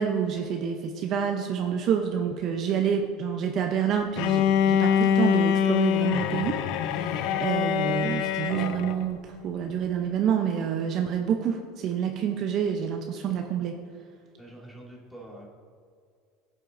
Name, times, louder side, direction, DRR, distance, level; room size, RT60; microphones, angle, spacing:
voice 1, 0.0-6.6 6.9-13.8, right 8 dB, 50° right, 4 dB, 0.7 m, -28 dB
Bowed string instrument, 4.2-9.0, left 8 dB, 65° left, 0.5 m, -24 dB
voice 2, 14.4-15.5, right 1 dB, ahead, -5 dB, 2.4 m, -45 dB
15.0 x 7.4 x 2.7 m, 2.2 s
supercardioid pair, 130°, 0 cm